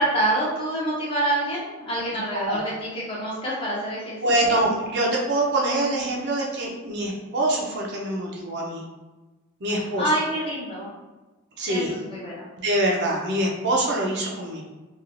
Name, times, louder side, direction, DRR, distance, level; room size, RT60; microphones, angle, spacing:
voice 1, 0.0-4.2 4.5-4.6 10.0-10.9 11.7-12.5, right 1 dB, 25° left, -6 dB, 0.7 m, -26 dB
voice 2, 4.2-8.8 9.6-10.1 11.6-11.9 12.6-14.6, right 1 dB, 50° right, -2 dB, 0.5 m, -24 dB
2.9 x 2.3 x 2.5 m, 1.2 s
head